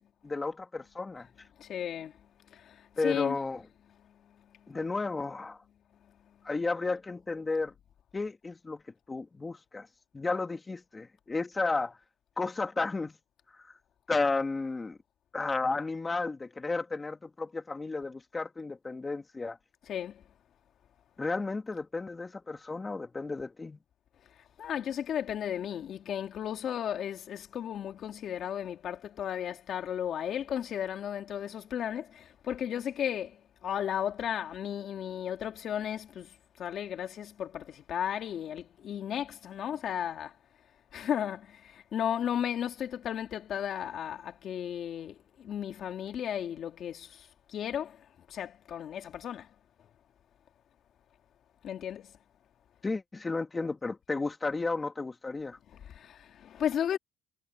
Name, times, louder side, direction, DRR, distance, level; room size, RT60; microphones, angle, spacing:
voice 1, 0.2-1.3 3.0-3.6 4.7-5.6 6.4-7.7 8.1-8.8 9.1-9.9 10.1-12.0 12.4-13.2 13.6-13.7 14.1-15.0 15.3-19.6 21.2-23.8 52.8-55.6, left 3 dB, 15° left, 2.0 m, -33 dB
voice 2, 1.6-2.1 2.5-3.4 4.6-4.7 19.9-20.2 24.6-40.3 40.9-49.5 51.6-52.1 55.7-57.0, left 9 dB, 45° left, 2.6 m, -35 dB
cardioid pair, 130°, 0 cm